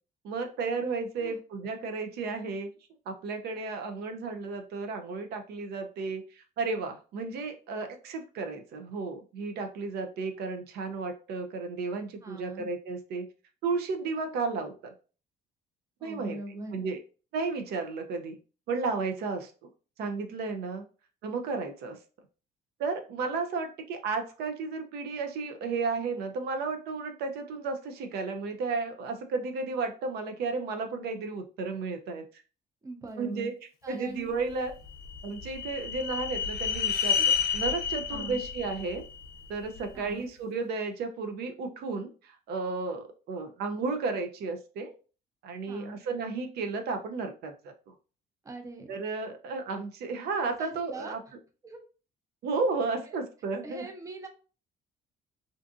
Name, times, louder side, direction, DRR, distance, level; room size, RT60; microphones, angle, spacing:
voice 1, 0.2-2.7 3.1-13.3 13.6-14.9 16.0-16.4 16.7-17.0 17.3-18.4 18.7-19.5 20.0-20.8 21.2-22.0 22.8-32.2 33.2-33.5 33.9-34.7 35.2-39.0 39.5-44.9 45.4-47.7 48.9-51.2 52.4-53.9, right 4 dB, 70° right, 6 dB, 0.5 m, -33 dB
voice 2, 12.2-12.7 16.0-16.8 32.8-33.5 33.8-34.4 38.1-38.4 39.9-40.3 45.7-46.0 48.4-48.9 50.6-51.2 51.6-51.8 53.6-54.3, right 2 dB, 20° right, 3 dB, 0.6 m, -41 dB
sound 1, 34.7-39.9, left 7 dB, 65° left, 0.5 m, -30 dB
2.5 x 2.5 x 2.4 m, 0.36 s
cardioid pair, 110°, 17 cm